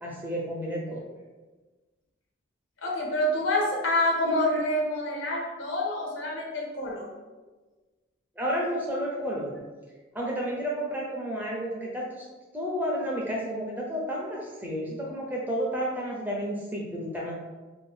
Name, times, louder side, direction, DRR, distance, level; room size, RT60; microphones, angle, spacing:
voice 1, 0.0-1.0 8.4-9.6 10.1-12.3 12.5-17.3, equal, 10° right, -3 dB, 0.4 m, -31 dB
voice 2, 2.8-7.1, left 1 dB, 85° left, -2 dB, 0.8 m, -27 dB
2.6 x 2.5 x 3.3 m, 1.3 s
head